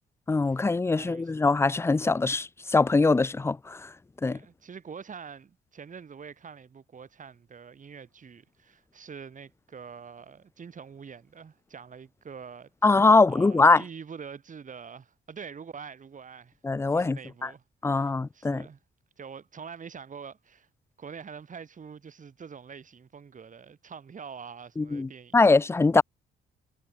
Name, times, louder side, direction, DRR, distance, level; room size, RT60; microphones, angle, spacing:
voice 1, 0.3-3.9 4.2-4.4 12.8-13.8 16.6-17.5 17.8-18.6 24.8-26.0, left 3 dB, 15° left, 0.4 m, -22 dB
voice 2, 0.9-1.3 4.2-12.7 13.3-16.6 16.9-18.8 19.2-20.7 21.0-25.5, right 6 dB, 40° right, 2.8 m, -45 dB
cardioid pair, 90°, 20 cm